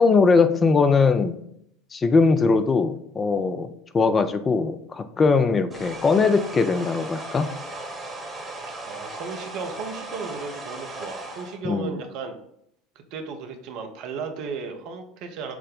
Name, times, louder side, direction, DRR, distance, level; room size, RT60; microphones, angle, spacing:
voice 1, 0.0-1.3 1.9-3.7 3.9-7.5 11.6-12.0, left 4 dB, 25° left, 9 dB, 0.4 m, -20 dB
sound 1, 5.7-11.6, right 2 dB, 25° right, 1.1 m, -37 dB
voice 2, 8.7-12.4 13.0-15.6, right 5 dB, 55° right, 5 dB, 0.6 m, -35 dB
5.9 x 2.1 x 3.6 m, 0.72 s
figure-of-eight pair, 75°, 0 cm